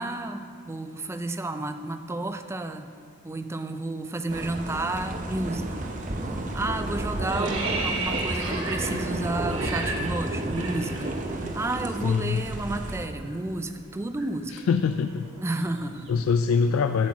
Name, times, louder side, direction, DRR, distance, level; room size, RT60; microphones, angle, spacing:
voice 1, 0.0-2.9 3.2-5.9 6.5-11.1 11.5-14.6 15.4-16.1, right 2 dB, 15° right, 9 dB, 0.4 m, -31 dB
sound 1, 4.3-13.1, right 2 dB, 40° right, 0.7 m, -32 dB
sound 2, 6.0-6.3 6.6-11.5 11.8-12.0 12.3-16.4, right 3 dB, 75° right, 1.5 m, -35 dB
voice 2, 12.0-12.4 14.5-15.3 16.1-17.1, left 5 dB, 80° left, 9 dB, 0.3 m, -24 dB
8.4 x 6.1 x 7.3 m, 2.2 s
head